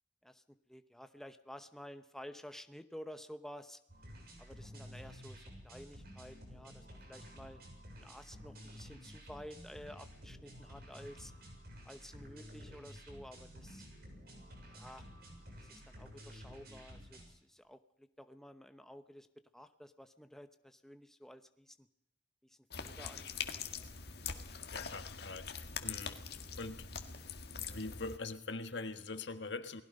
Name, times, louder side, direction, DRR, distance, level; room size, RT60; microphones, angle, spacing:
voice 1, 0.2-3.8 4.4-7.6 8.0-11.3 11.8-13.8 14.7-15.1 15.6-19.3 19.5-21.9 22.4-23.9, equal, ahead, 9 dB, 0.9 m, -52 dB
sound 1, 3.9-17.2, equal, 60° right, 6.8 m, -52 dB
sound 2, 22.7-28.2, left 6 dB, 65° left, 1.8 m, -43 dB
voice 2, 24.7-26.2 26.6-26.9 27.6-29.8, left 3 dB, 85° left, 9 dB, 1.6 m, -43 dB
29.0 x 19.5 x 5.3 m, 0.78 s
head